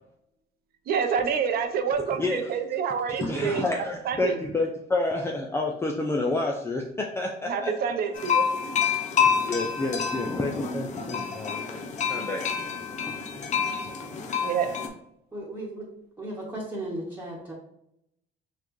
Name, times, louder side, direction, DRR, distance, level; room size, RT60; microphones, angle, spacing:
voice 1, 0.9-3.6 4.0-4.4 7.5-8.4 10.6-11.0 14.4-14.7, right 6 dB, 65° right, 7 dB, 0.7 m, -27 dB
voice 2, 2.2-2.5 3.1-7.7 9.2-11.8 12.1-12.4 13.1-13.2 13.8-13.9, left 2 dB, 15° left, 0 dB, 0.5 m, -29 dB
sound 1, 8.1-14.9, left 6 dB, 45° left, 0.7 m, -28 dB
voice 3, 15.3-15.9 16.2-17.5, right 1 dB, 10° right, -4 dB, 1.2 m, -35 dB
5.8 x 2.3 x 3.1 m, 0.77 s
cardioid pair, 110°, 17 cm